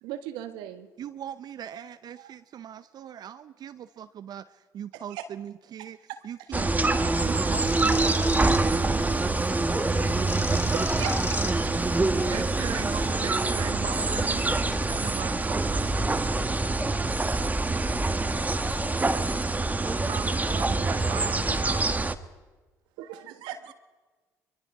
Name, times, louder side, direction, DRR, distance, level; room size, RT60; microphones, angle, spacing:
voice 1, 0.0-0.9 2.2-2.3 4.9-5.3 5.8-6.2 10.4-11.1 23.0-23.7, right 11 dB, 75° right, 9 dB, 1.4 m, -38 dB
voice 2, 1.0-6.0 6.2-9.0 12.3-16.4 19.8-22.1, right 9 dB, 55° right, 12 dB, 0.7 m, -39 dB
sound 1, 6.5-22.1, right 2 dB, 20° right, 1.4 m, -25 dB
sound 2, 7.1-13.3, left 3 dB, 30° left, 2.6 m, -38 dB
voice 3, 9.6-10.0 10.4-11.3 12.2-12.4 14.0-14.6 16.0-16.2 16.6-16.9 18.6-19.0, left 1 dB, 10° left, 7 dB, 2.3 m, -39 dB
24.0 x 22.5 x 4.8 m, 1.3 s
hypercardioid pair, 50°, 8 cm